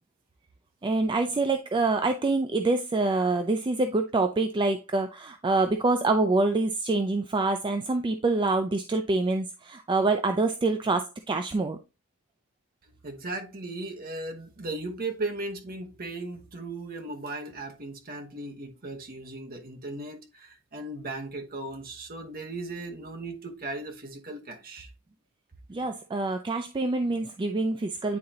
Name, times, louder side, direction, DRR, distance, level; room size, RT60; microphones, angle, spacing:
voice 1, 0.8-11.8 25.7-28.2, right 3 dB, 20° right, 0.4 m, -26 dB
voice 2, 13.0-24.9, right 2 dB, 45° right, 1.1 m, -37 dB
9.5 x 3.8 x 2.8 m
head